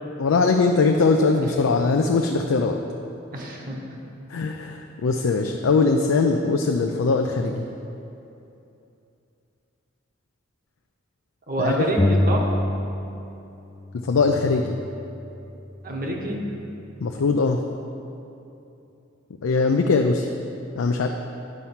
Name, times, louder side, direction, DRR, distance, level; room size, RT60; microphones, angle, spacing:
voice 1, 0.2-2.8 4.3-7.7 11.6-11.7 13.9-14.8 17.0-17.6 19.4-20.3 20.8-21.1, left 4 dB, 85° left, 4 dB, 0.4 m, -21 dB
voice 2, 3.3-3.9 11.5-12.5 15.8-16.4, right 1 dB, 45° right, -1 dB, 1.1 m, -27 dB
sound 1, 12.0-13.5 13.7-15.5, left 1 dB, 15° left, 0.3 m, -26 dB
9.5 x 4.4 x 5.6 m, 2.8 s
head